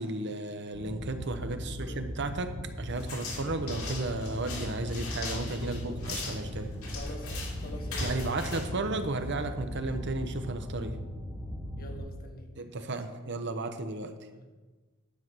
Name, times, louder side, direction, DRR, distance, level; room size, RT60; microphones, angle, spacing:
voice 1, 0.0-6.7 8.0-11.0 12.6-14.1, right 2 dB, 55° right, 8 dB, 1.0 m, -34 dB
sound 1, 0.7-12.0, equal, 5° right, 1.4 m, -39 dB
voice 2, 1.6-2.0 5.8-6.0 6.8-8.8 11.8-12.5 12.9-13.2 14.3-14.5, left 1 dB, 45° left, 3 dB, 1.6 m, -47 dB
sound 2, 3.0-9.5, left 2 dB, 85° left, 3.2 m, -40 dB
10.5 x 7.1 x 6.2 m, 1.3 s
head